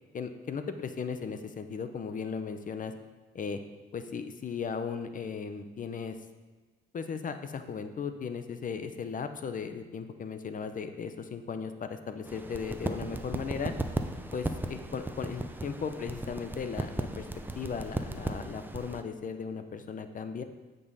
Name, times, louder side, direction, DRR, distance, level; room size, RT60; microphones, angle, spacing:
voice 1, 0.1-2.9 3.3-3.6 3.9-6.2 6.9-13.7 14.3-17.3 17.5-20.4, left 6 dB, 40° left, 9 dB, 0.7 m, -36 dB
sound 1, 12.3-19.0, right 1 dB, 10° right, 0.6 m, -36 dB
8.7 x 5.4 x 4.1 m, 1.3 s
cardioid pair, 90°, 20 cm